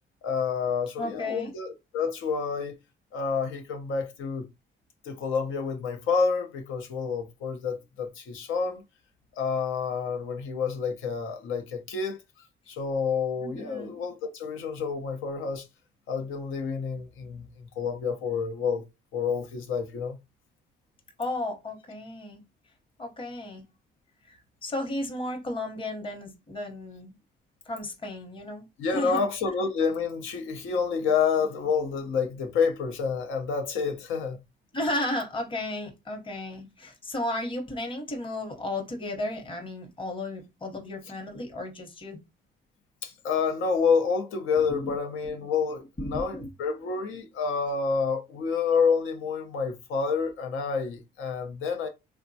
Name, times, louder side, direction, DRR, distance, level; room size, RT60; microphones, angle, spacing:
voice 1, 0.2-2.8 3.1-4.5 5.0-8.8 9.4-15.7 16.1-18.8 19.1-20.2 28.8-34.4 43.0-51.9, left 5 dB, 90° left, 0.7 m, -28 dB
voice 2, 1.0-1.5 13.4-13.9 21.2-22.4 23.0-23.6 24.2-27.2 27.7-29.2 34.7-42.2 44.7-44.9 46.0-46.5, left 1 dB, 25° left, 0.8 m, -34 dB
3.4 x 2.1 x 2.6 m
cardioid pair, 90°, 20 cm